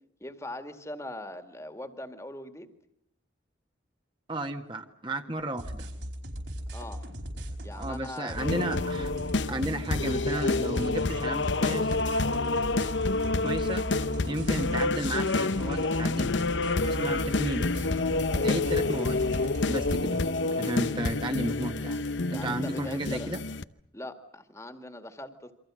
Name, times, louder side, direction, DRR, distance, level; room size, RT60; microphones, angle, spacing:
voice 1, 0.2-2.7 6.7-7.1 7.6-8.4 13.7-13.8 18.3-18.6 22.3-23.3 23.9-25.5, left 1 dB, 15° left, 8 dB, 2.1 m, -41 dB
voice 2, 4.3-5.9 7.7-9.1 9.5-12.0 13.4-13.8 14.3-16.4 16.8-17.7 18.4-19.2 19.7-20.2 20.5-22.0 22.3-23.4, right 1 dB, 25° right, 5 dB, 1.6 m, -33 dB
sound 1, 5.6-20.0, equal, 65° right, 5.1 m, -38 dB
sound 2, 8.4-23.6, left 3 dB, 75° left, 0.9 m, -28 dB
28.0 x 25.0 x 6.3 m, 0.78 s
head